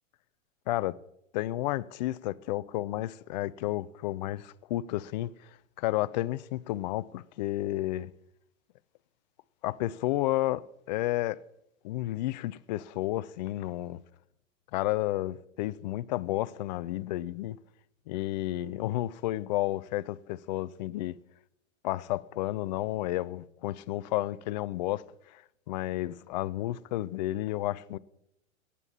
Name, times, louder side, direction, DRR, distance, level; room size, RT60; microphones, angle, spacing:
voice 1, 0.7-1.0 1.3-8.1 9.6-11.4 11.8-14.0 14.7-17.6 18.1-21.2 21.8-28.0, left 16 dB, 35° left, 0.4 m, -32 dB
19.0 x 8.4 x 4.3 m
hypercardioid pair, 115°, 40 cm